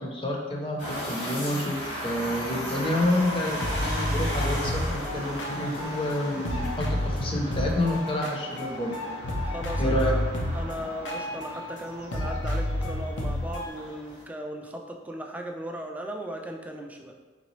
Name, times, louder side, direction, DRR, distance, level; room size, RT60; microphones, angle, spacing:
voice 1, 0.0-8.9 9.8-10.1, left 1 dB, 30° left, 0 dB, 0.6 m, -28 dB
sound 1, 0.8-14.2, equal, 65° left, 1.3 m, -36 dB
sound 2, 3.3-3.4 3.6-6.2 6.5-11.8 12.1-13.7, left 1 dB, 85° left, 0.6 m, -30 dB
voice 2, 9.5-10.2 10.5-17.1, equal, 10° right, 2 dB, 0.3 m, -37 dB
4.0 x 3.2 x 3.1 m, 1.4 s
head